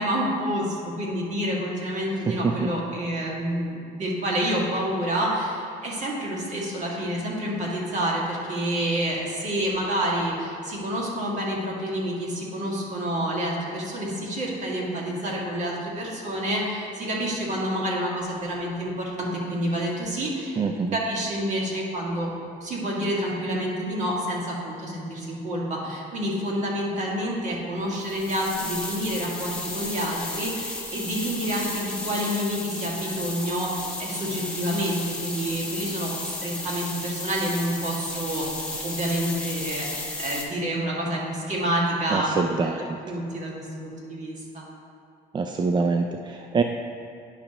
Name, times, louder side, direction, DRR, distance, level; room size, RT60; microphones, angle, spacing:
voice 1, 0.0-20.6 20.9-22.3 22.6-36.2 36.4-42.3 42.6-42.7 43.0-44.6, equal, 45° right, -4 dB, 1.9 m, -28 dB
voice 2, 20.6-21.0 42.1-43.0 45.3-46.6, right 4 dB, 25° right, 4 dB, 0.3 m, -25 dB
sound 1, 28.0-40.5, left 2 dB, 5° left, 1.1 m, -34 dB
9.9 x 6.2 x 3.0 m, 2.6 s
cardioid pair, 110°, 17 cm